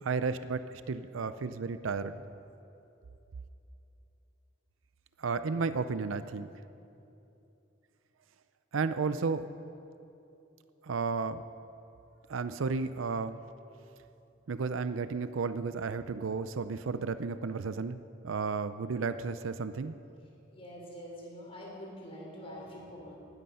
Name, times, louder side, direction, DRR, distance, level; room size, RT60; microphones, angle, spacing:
voice 1, 0.0-2.2 5.2-6.5 8.7-9.5 10.8-11.4 12.3-13.4 14.5-19.9, right 4 dB, 90° right, 12 dB, 0.5 m, -33 dB
voice 2, 20.5-23.2, equal, 30° left, -3 dB, 4.3 m, -45 dB
19.5 x 13.0 x 5.6 m, 2.8 s
head